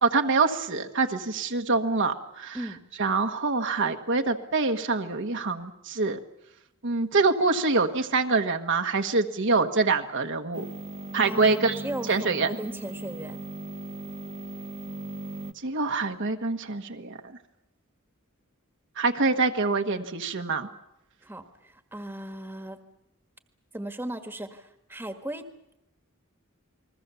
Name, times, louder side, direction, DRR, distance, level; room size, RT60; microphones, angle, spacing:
voice 1, 0.0-2.6 3.0-6.2 6.8-10.6 11.1-11.8 12.1-12.5 15.6-17.2 19.0-20.7, right 3 dB, 60° right, 5 dB, 1.4 m, -25 dB
sound 1, 10.5-15.5, right 2 dB, 30° right, 1.1 m, -38 dB
voice 2, 11.2-13.4 21.2-22.8 23.7-25.5, right 1 dB, 10° right, 7 dB, 1.6 m, -37 dB
29.0 x 21.5 x 7.0 m, 0.86 s
head